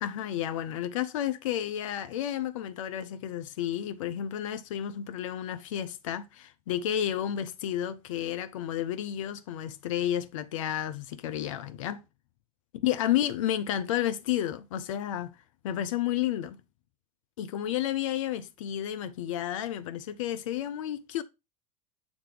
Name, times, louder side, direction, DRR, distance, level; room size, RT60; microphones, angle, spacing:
voice 1, 0.0-12.0 12.8-15.3 15.6-16.6 17.4-21.2, left 11 dB, 60° left, 0.6 m, -31 dB
7.3 x 3.4 x 4.8 m
figure-of-eight pair, 75°, 19 cm